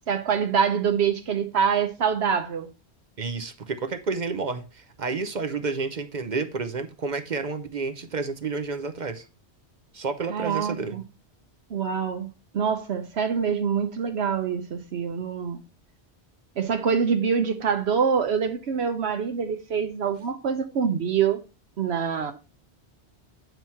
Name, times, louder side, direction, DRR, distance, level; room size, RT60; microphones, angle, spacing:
voice 1, 0.1-2.7 10.3-11.0 11.7-12.3 12.5-15.6 16.6-21.4 21.8-22.3, right 7 dB, 70° right, 1.0 m, -25 dB
voice 2, 3.2-9.3 9.9-11.0, right 4 dB, 50° right, 0.8 m, -30 dB
9.0 x 3.0 x 5.5 m
omnidirectional pair, 1.1 m